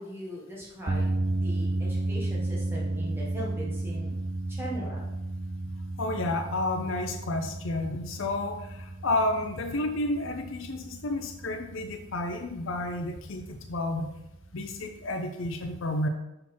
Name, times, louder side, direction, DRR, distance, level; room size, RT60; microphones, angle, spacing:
voice 1, 0.0-4.1 4.5-5.1, equal, 10° right, -5 dB, 1.3 m, -39 dB
sound 1, 0.9-15.1, right 2 dB, 25° right, 0.3 m, -33 dB
voice 2, 6.0-14.1 14.5-16.1, left 2 dB, 70° left, 6 dB, 0.5 m, -31 dB
6.0 x 3.8 x 4.3 m, 0.90 s
head